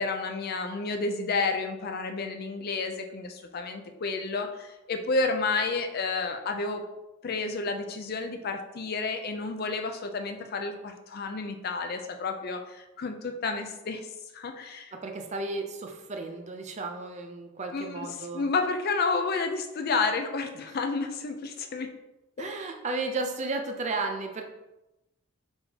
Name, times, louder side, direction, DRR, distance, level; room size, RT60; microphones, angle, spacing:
voice 1, 0.0-6.8 7.2-14.1 14.3-14.9 17.7-18.1 18.3-21.9 22.4-22.5, left 4 dB, 50° left, 5 dB, 0.4 m, -30 dB
voice 2, 14.9-18.5 22.4-24.4, right 3 dB, 35° right, 4 dB, 0.5 m, -33 dB
4.4 x 3.5 x 2.8 m, 0.98 s
head